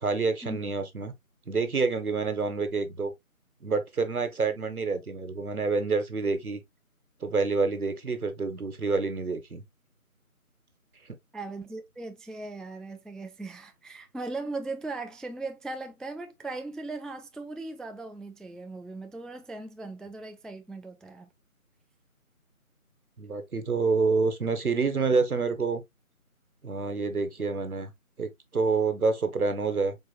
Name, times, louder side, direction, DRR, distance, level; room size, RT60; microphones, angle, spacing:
voice 1, 0.0-1.1 1.5-3.1 3.6-6.6 7.2-9.6 23.2-25.8 26.6-27.9 28.2-30.0, right 4 dB, 80° right, 1.3 m, -27 dB
voice 2, 11.3-21.3, right 3 dB, ahead, 0.4 m, -38 dB
4.5 x 4.2 x 2.3 m
figure-of-eight pair, 180°, 43 cm